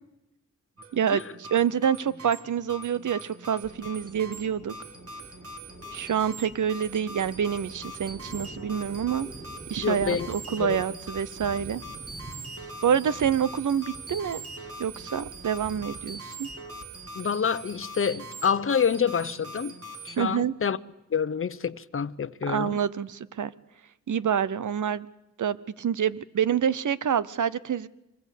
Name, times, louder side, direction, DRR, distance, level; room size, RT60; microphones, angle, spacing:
sound 1, 0.8-20.2, right 2 dB, 50° right, 3.0 m, -42 dB
voice 1, 0.9-4.7 5.9-9.3 9.7-11.8 12.8-14.4 14.8-16.5 20.2-20.5 22.5-23.5 24.1-25.1 25.4-27.9, right 8 dB, 85° right, 0.8 m, -27 dB
Thunder, 3.6-18.4, right 1 dB, 25° right, 3.7 m, -47 dB
voice 2, 9.8-10.3 10.6-10.8 17.2-19.7 20.0-20.8 21.1-22.8, left 7 dB, 45° left, 0.8 m, -27 dB
24.0 x 20.0 x 8.3 m
wide cardioid pair, 80°, 30 cm